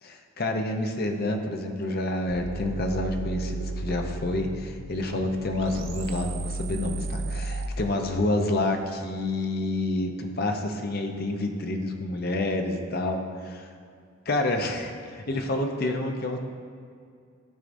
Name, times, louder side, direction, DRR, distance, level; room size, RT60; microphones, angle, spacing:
voice 1, 0.0-13.7 14.3-16.4, left 2 dB, 50° left, 4 dB, 0.7 m, -28 dB
sound 1, 2.3-7.7, right 3 dB, 75° right, 0.5 m, -34 dB
12.5 x 4.8 x 2.6 m, 2.3 s
head